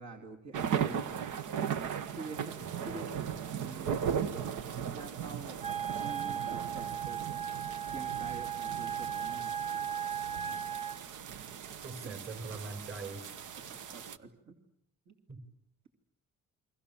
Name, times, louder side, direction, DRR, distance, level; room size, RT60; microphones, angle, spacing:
voice 1, 0.0-1.3 2.1-2.5 2.8-3.9 4.9-5.7 6.0-7.2 7.9-9.9 12.0-12.2 13.7-14.6 15.1-15.2, right 4 dB, 65° right, 2 dB, 3.0 m, -47 dB
sound 1, 0.5-14.2, right 8 dB, 80° right, 1.2 m, -37 dB
voice 2, 2.6-3.2 10.5-10.8 11.8-13.3 15.3-15.4, right 3 dB, 45° right, 9 dB, 5.5 m, -44 dB
Wind instrument woodwind instrument, 5.6-11.0, right 9 dB, 20° right, 1.2 m, -36 dB
29.5 x 23.5 x 7.2 m, 0.72 s
cardioid pair, 90°, 30 cm